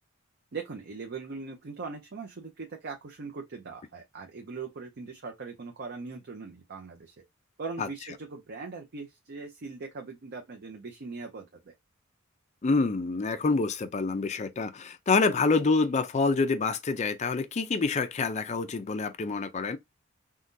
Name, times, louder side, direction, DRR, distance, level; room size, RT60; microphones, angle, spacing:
voice 1, 0.5-7.1 7.6-11.5, right 4 dB, 55° right, 0.6 m, -40 dB
voice 2, 12.6-19.8, left 4 dB, 35° left, 0.4 m, -27 dB
3.7 x 2.2 x 2.6 m
head